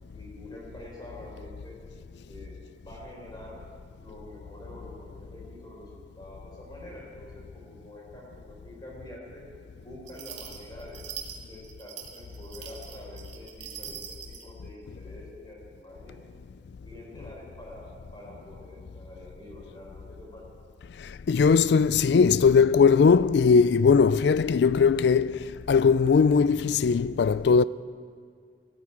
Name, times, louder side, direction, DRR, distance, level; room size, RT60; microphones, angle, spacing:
voice 1, 0.1-1.7 2.3-2.5 2.8-3.6 4.0-9.4 9.8-11.0 11.5-16.2 16.8-20.4, left 1 dB, 25° left, 4.4 m, -46 dB
sound 1, 10.1-14.5, right 8 dB, 75° right, 1.9 m, -42 dB
voice 2, 21.3-27.6, left 5 dB, 60° left, 0.3 m, -20 dB
15.0 x 9.3 x 8.7 m
head